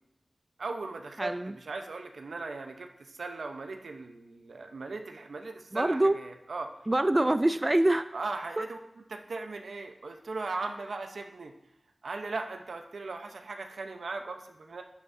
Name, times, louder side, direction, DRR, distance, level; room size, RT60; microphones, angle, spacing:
voice 1, 0.6-6.7 8.1-8.8 9.1-11.5 12.0-14.8, right 3 dB, 90° right, 5 dB, 0.9 m, -38 dB
voice 2, 1.2-1.6 5.7-6.2 6.9-8.0 8.6-8.7, right 1 dB, 25° right, 11 dB, 0.3 m, -25 dB
12.0 x 9.4 x 2.7 m, 0.83 s
wide cardioid pair, 95°, 0 cm